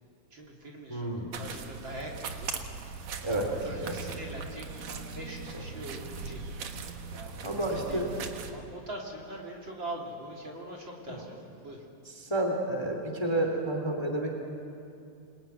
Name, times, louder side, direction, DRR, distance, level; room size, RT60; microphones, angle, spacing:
voice 1, 0.3-2.5 3.2-6.4 7.1-11.8, right 1 dB, 40° right, -1 dB, 3.5 m, -42 dB
voice 2, 0.9-1.3 3.2-3.5 3.8-3.9 7.4-8.1 11.1-11.2 12.3-14.4, right 1 dB, 10° left, 3 dB, 2.6 m, -30 dB
sound 1, 1.3-8.5, right 5 dB, 65° right, 2.5 m, -40 dB
27.5 x 21.0 x 9.4 m, 2.6 s
omnidirectional pair, 3.4 m